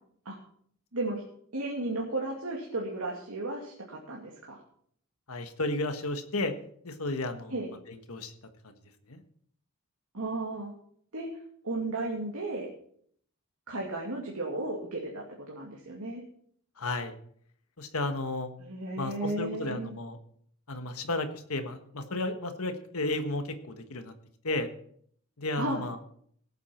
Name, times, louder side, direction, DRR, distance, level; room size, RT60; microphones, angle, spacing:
voice 1, 0.9-1.2 1.5-4.6 7.5-7.7 10.1-10.7 11.1-11.3 11.6-12.7 13.7-16.2 18.6-19.9 25.6-25.8, right 2 dB, 85° right, -2 dB, 2.4 m, -34 dB
voice 2, 5.3-6.5 6.8-7.5 7.9-8.3 9.1-9.2 16.8-17.1 17.8-18.5 19.0-20.2 20.7-24.1 24.4-24.7 25.4-26.0, left 2 dB, 80° left, 7 dB, 1.5 m, -33 dB
18.5 x 8.3 x 4.5 m, 0.63 s
head